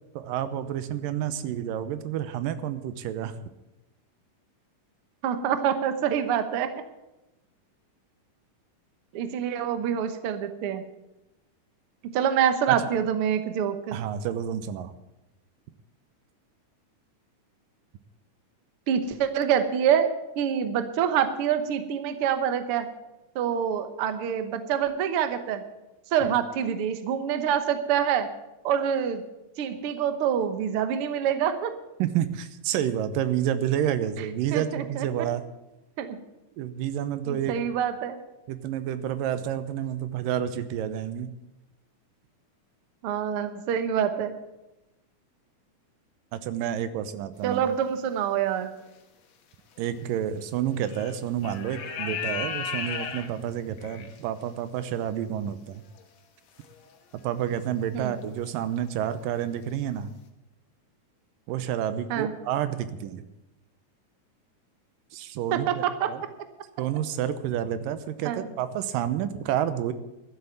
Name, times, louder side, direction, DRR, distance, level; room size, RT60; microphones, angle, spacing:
voice 1, 0.1-3.4 12.7-12.8 13.9-14.9 26.2-26.4 32.0-35.4 36.6-37.6 38.5-41.3 46.3-47.6 49.8-55.8 57.1-60.1 61.5-63.2 65.1-66.2 66.8-69.9, right 10 dB, 85° right, 12 dB, 2.6 m, -29 dB
voice 2, 5.2-6.7 9.1-10.8 12.1-14.0 18.9-22.9 23.3-25.6 26.1-28.3 28.6-29.2 29.6-31.7 34.5-35.1 36.0-36.2 37.3-38.2 43.0-44.3 47.4-48.7 57.9-58.1 62.1-62.3 65.5-66.1 68.2-68.4, right 8 dB, 60° right, 9 dB, 1.5 m, -26 dB
sound 1, 48.6-48.8 50.0-50.1 50.9-51.2 51.4-54.2 56.0-56.1 56.6-56.7 57.6-57.9 58.2-58.5 58.8-58.9, left 6 dB, 60° left, 2.3 m, -34 dB
13.0 x 7.9 x 9.3 m, 0.95 s
omnidirectional pair, 3.8 m